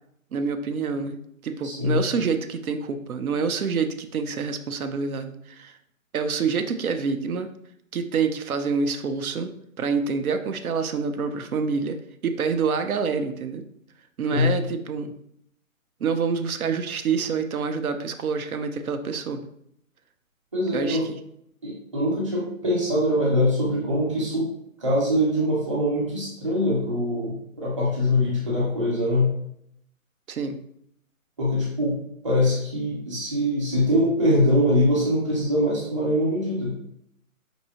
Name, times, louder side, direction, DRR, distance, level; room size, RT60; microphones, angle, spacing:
voice 1, 0.3-5.8 6.1-7.5 7.9-9.5 9.8-12.0 12.2-13.6 14.2-15.1 16.0-19.5 20.7-21.2 30.3-30.6, right 5 dB, 85° right, 7 dB, 0.7 m, -27 dB
voice 2, 1.6-2.0 14.3-14.5 20.5-21.0 21.6-24.5 24.8-29.3 31.4-31.9 32.2-36.7, left 1 dB, 20° right, -6 dB, 0.8 m, -23 dB
5.3 x 2.7 x 2.9 m, 0.73 s
hypercardioid pair, 165°, 42 cm